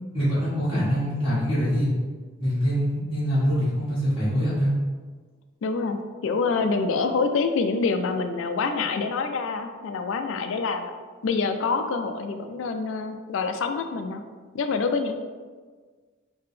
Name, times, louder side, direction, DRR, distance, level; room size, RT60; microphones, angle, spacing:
voice 1, 0.1-1.9 2.4-4.7, equal, 25° left, -12 dB, 1.4 m, -24 dB
voice 2, 5.6-10.9 11.2-14.2 14.5-15.1, left 4 dB, 65° left, 7 dB, 0.3 m, -26 dB
3.6 x 2.8 x 3.2 m, 1.5 s
head